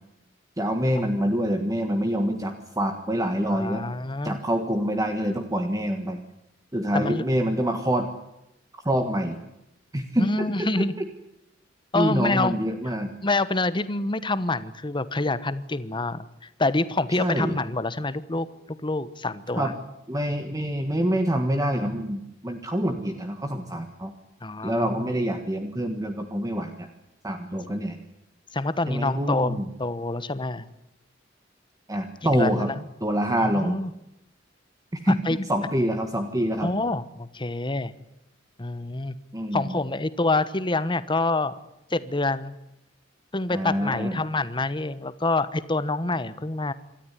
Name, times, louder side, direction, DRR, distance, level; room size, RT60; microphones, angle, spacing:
voice 1, 0.6-3.8 4.2-6.2 6.7-8.1 8.8-9.4 9.9-10.5 10.8-10.9 11.9-13.1 17.2-17.6 19.5-19.7 20.1-24.1 24.6-26.9 27.2-28.0 28.9-29.6 31.9-32.7 33.0-33.8 35.0-36.7 39.3-39.8 43.5-44.2, equal, 20° right, 5 dB, 1.5 m, -26 dB
voice 2, 3.5-4.4 6.9-7.2 10.2-10.9 11.9-12.6 12.9-13.0 13.2-19.7 24.4-25.1 28.5-30.7 32.2-32.8 33.4-33.9 35.1-35.4 36.6-37.9 38.6-39.2 39.5-41.5 41.9-42.5 43.3-46.7, left 2 dB, 25° left, 15 dB, 1.1 m, -27 dB
26.5 x 13.5 x 10.0 m, 0.88 s
head